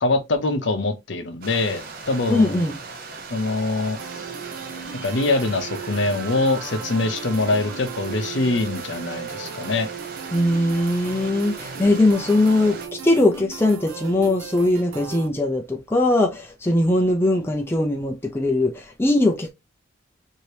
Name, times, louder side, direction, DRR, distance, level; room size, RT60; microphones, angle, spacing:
voice 1, 0.0-2.7 3.3-4.0 5.0-9.9, left 2 dB, 60° left, 0.7 m, -23 dB
Stream, 1.4-12.9, right 4 dB, 45° right, 0.5 m, -38 dB
voice 2, 2.3-2.8 10.3-19.5, left 2 dB, 10° left, 0.4 m, -20 dB
sound 1, 4.0-15.3, right 7 dB, 90° right, 0.6 m, -37 dB
2.9 x 2.7 x 3.2 m
head